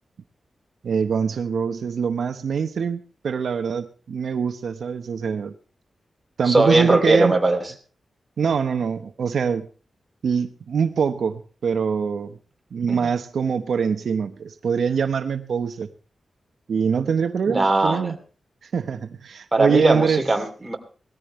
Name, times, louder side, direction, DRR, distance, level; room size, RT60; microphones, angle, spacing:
voice 1, 0.8-5.5 6.4-7.3 8.4-9.7 10.2-12.4 12.7-15.9 16.7-18.2 18.6-20.2, right 6 dB, 80° right, 9 dB, 1.0 m, -24 dB
voice 2, 6.5-7.6 12.9-13.1 17.5-18.1 19.5-20.8, right 2 dB, 15° right, 4 dB, 2.8 m, -20 dB
19.0 x 14.0 x 3.2 m, 0.38 s
wide cardioid pair, 115°, 0 cm